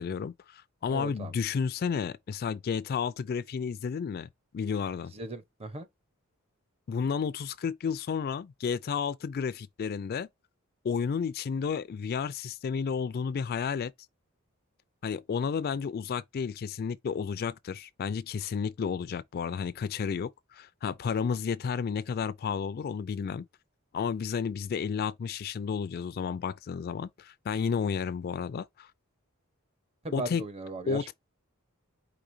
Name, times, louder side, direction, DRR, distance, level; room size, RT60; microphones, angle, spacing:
voice 1, 0.0-4.3 4.5-5.1 6.9-10.3 10.8-13.9 15.0-23.5 23.9-28.9 30.1-30.4 30.9-31.1, left 6 dB, 45° left, 0.3 m, -32 dB
voice 2, 0.9-1.3 5.1-5.9 30.0-31.1, right 2 dB, 30° right, 0.7 m, -37 dB
4.9 x 3.3 x 2.6 m
head